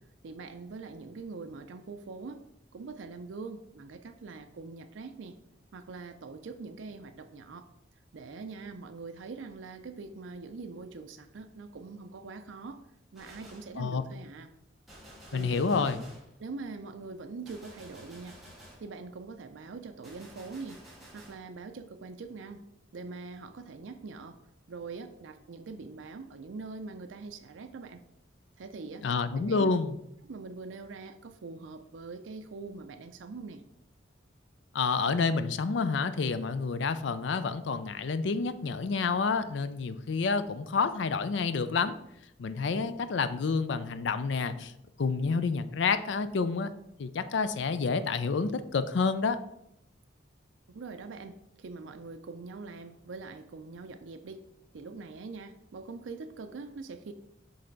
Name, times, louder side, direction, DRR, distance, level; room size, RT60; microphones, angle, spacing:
voice 1, 0.2-2.4 2.7-5.4 5.7-7.7 8.1-12.8 13.1-14.5 15.3-15.9 16.4-18.4 18.8-20.8 21.1-22.6 22.9-24.4 24.7-28.0 28.6-29.1 29.3-29.9 30.2-33.6 50.7-54.5 54.7-57.1, right 4 dB, 80° right, 7 dB, 0.5 m, -43 dB
Gunshot gunfire, 13.1-13.8 14.9-16.3 17.4-18.9 20.0-21.4, equal, ahead, 1.6 m, -51 dB
voice 2, 15.3-16.0 29.0-29.9 34.7-41.9 42.4-44.7 45.0-46.7 47.0-49.4, left 4 dB, 70° left, 12 dB, 0.4 m, -29 dB
7.8 x 3.3 x 3.9 m, 0.80 s
head